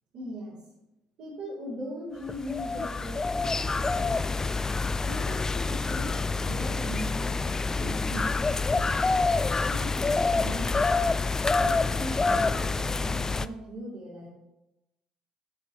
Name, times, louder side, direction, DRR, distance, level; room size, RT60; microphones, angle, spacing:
voice 1, 0.1-0.6 1.2-3.2 3.5-4.5 5.0-9.1 9.6-11.1 11.6-14.3, equal, 65° right, -10 dB, 2.8 m, -40 dB
sound 1, 2.3-13.5, left 3 dB, 25° left, 0.3 m, -27 dB
8.5 x 6.3 x 3.0 m, 0.91 s
hypercardioid pair, 55°, 2 cm